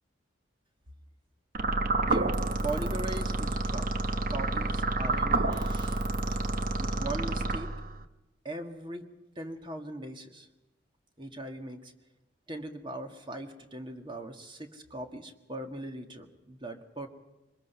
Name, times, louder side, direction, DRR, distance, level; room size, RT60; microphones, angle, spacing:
sound 1, 1.5-8.0, right 2 dB, 45° right, 1.0 m, -29 dB
voice 1, 2.0-6.4 6.8-7.7 8.4-9.1 9.4-10.5 11.2-11.9 12.5-17.1, right 1 dB, 25° right, 5 dB, 1.8 m, -40 dB
24.5 x 21.0 x 5.7 m, 1.1 s
head